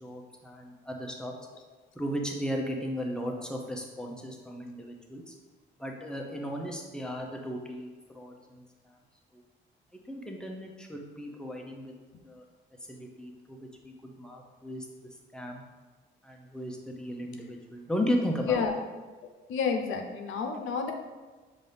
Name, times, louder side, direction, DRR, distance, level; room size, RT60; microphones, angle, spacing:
voice 1, 0.0-1.3 2.0-5.3 5.8-8.6 10.1-11.9 12.2-12.4 12.9-13.6 13.8-14.9 15.3-15.6 16.2-18.6, equal, 5° left, 0 dB, 0.7 m, -35 dB
voice 2, 19.5-20.9, left 6 dB, 80° left, 4 dB, 0.6 m, -29 dB
5.3 x 2.7 x 3.3 m, 1.3 s
cardioid pair, 90°, 20 cm